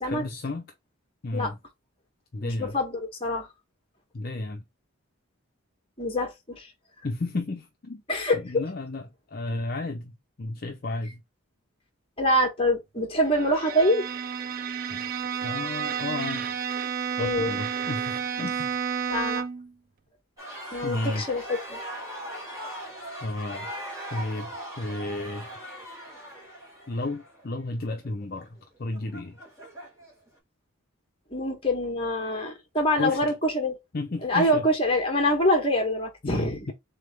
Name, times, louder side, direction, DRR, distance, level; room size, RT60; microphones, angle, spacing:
voice 1, 0.0-0.6 1.2-1.6 2.3-2.8 4.1-4.6 7.0-8.0 8.3-10.1 10.4-11.2 14.9-15.0 15.4-16.5 17.2-18.8 20.8-21.2 23.2-23.7 24.1-25.5 26.9-29.4 33.0-33.3 33.9-34.7 36.2-36.7, left 2 dB, 45° left, 0.5 m, -33 dB
voice 2, 2.4-3.5 6.0-6.7 8.1-8.6 12.2-14.1 17.2-17.5 19.1-19.4 20.7-21.8 31.3-33.8 34.2-36.7, left 1 dB, 25° left, 1.2 m, -25 dB
Bowed string instrument, 13.3-19.7, right 7 dB, 40° right, 0.3 m, -31 dB
sound 1, 20.4-30.3, right 1 dB, 15° right, 2.0 m, -40 dB
3.8 x 3.5 x 3.2 m
head